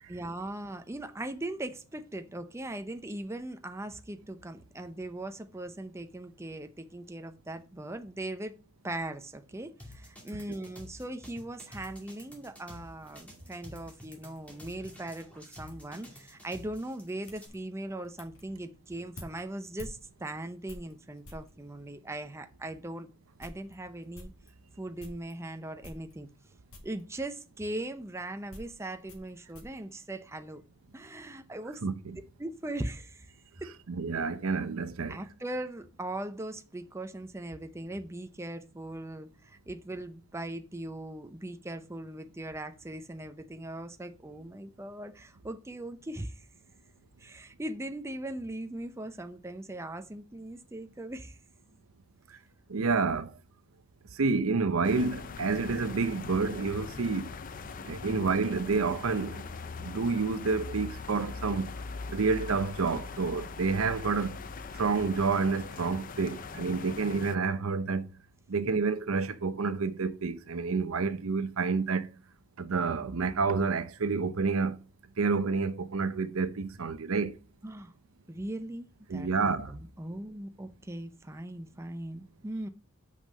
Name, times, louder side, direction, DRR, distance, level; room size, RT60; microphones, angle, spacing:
voice 1, 0.1-8.5 8.8-23.1 23.4-24.3 24.8-26.3 26.8-30.6 30.9-31.8 32.4-33.3 33.6-33.7 35.1-46.5 47.2-51.4 66.5-67.1 77.6-77.9 78.3-82.7, right 1 dB, 15° right, 0.6 m, -39 dB
sound 1, 9.8-17.5, left 1 dB, 5° left, 2.2 m, -50 dB
perfume spray, 12.9-21.6 22.3-22.4 22.8-22.9 23.2-25.4 25.8-26.4 26.7-27.1 27.9-30.8 31.1-31.7, left 1 dB, 90° left, 2.2 m, -52 dB
voice 2, 31.8-32.2 33.9-35.2 52.7-53.3 54.2-57.2 57.9-59.4 59.8-61.7 62.1-64.3 64.8-68.0 68.5-72.1 72.6-74.8 75.2-77.3 79.1-79.7, right 4 dB, 80° right, 0.7 m, -29 dB
sound 2, 54.8-67.4, left 4 dB, 40° left, 0.5 m, -41 dB
6.3 x 5.5 x 5.4 m
head